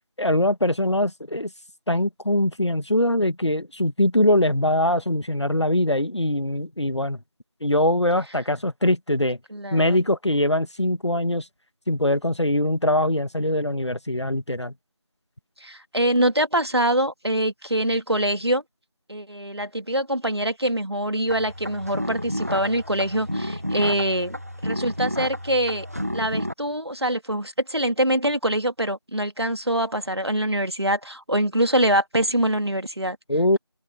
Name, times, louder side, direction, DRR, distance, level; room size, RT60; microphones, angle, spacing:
voice 1, 0.2-1.5 1.9-7.2 7.6-9.4 9.7-11.4 11.9-14.7 33.3-33.6, left 1 dB, 85° left, 1.6 m, -22 dB
voice 2, 9.5-10.0 15.6-18.6 19.1-24.4 24.6-25.9 26.1-33.2, right 1 dB, 65° right, 2.3 m, -24 dB
sound 1, 21.3-26.5, equal, 35° right, 1.4 m, -31 dB
open air
figure-of-eight pair, 180°, 14 cm